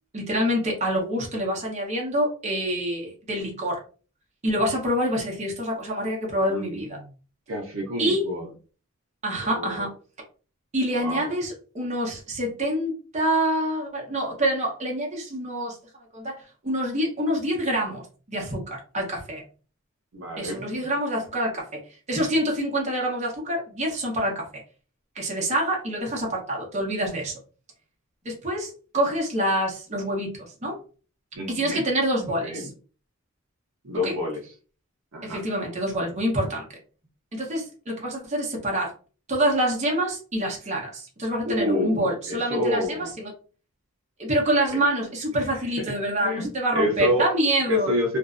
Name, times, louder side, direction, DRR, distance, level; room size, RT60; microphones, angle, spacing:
voice 1, 0.1-3.8 4.4-7.0 8.0-8.3 9.2-9.9 10.7-15.8 16.1-19.4 20.4-21.8 22.1-24.5 25.1-27.3 28.2-30.8 31.5-32.7 34.0-34.1 35.2-36.7 37.3-38.9 39.3-43.3 44.2-47.9, right 1 dB, 35° right, -2 dB, 0.8 m, -26 dB
voice 2, 6.4-7.0 7.5-8.5 9.4-9.9 11.0-11.3 20.1-20.7 31.3-31.8 32.4-32.7 33.8-34.5 35.1-35.4 41.5-43.1 45.5-47.2 47.7-48.2, left 1 dB, 65° right, -1 dB, 0.6 m, -28 dB
2.5 x 2.1 x 2.4 m, 0.38 s
head